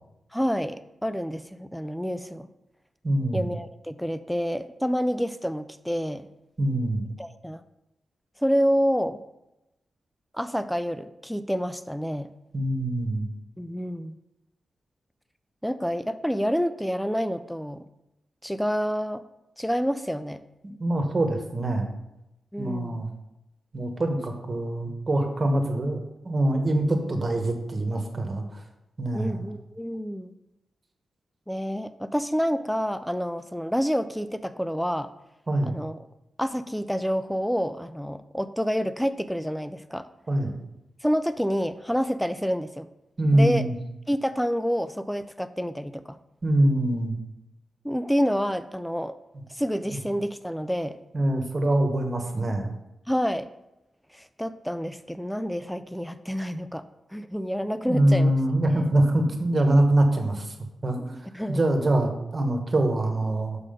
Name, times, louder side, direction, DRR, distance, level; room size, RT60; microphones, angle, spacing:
voice 1, 0.3-2.5 3.3-6.3 7.2-7.6 8.4-9.2 10.3-12.3 13.6-14.1 15.6-17.8 18.4-19.2 19.6-20.4 22.5-23.0 29.1-30.3 31.5-35.1 35.6-36.0 36.4-40.1 41.0-42.9 43.3-43.7 44.1-46.2 47.8-49.1 49.5-51.0 53.1-53.5 54.1-56.9 57.1-58.3 58.7-58.9 61.0-61.6, equal, ahead, 12 dB, 0.3 m, -28 dB
voice 2, 3.0-3.5 6.6-7.0 12.5-13.3 20.8-21.9 22.6-23.1 23.7-26.0 26.2-28.6 29.0-29.4 35.5-35.8 40.3-40.5 43.2-43.7 46.4-47.1 51.1-52.7 57.8-60.5 60.8-61.0 61.5-63.6, right 1 dB, 35° right, 4 dB, 1.2 m, -24 dB
6.2 x 5.8 x 5.1 m, 0.91 s
wide cardioid pair, 110°, 0 cm